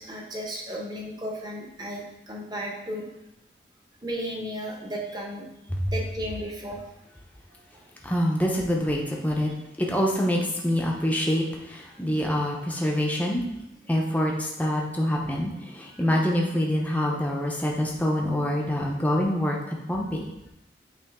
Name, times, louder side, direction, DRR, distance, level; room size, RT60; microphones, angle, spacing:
voice 1, 0.0-3.0 4.0-5.5 5.9-6.8, equal, 25° right, -1 dB, 1.0 m, -34 dB
voice 2, 8.0-9.5 9.8-13.4 13.9-19.6 19.9-20.2, equal, 10° left, -1 dB, 0.7 m, -25 dB
8.5 x 3.1 x 3.6 m, 0.91 s
head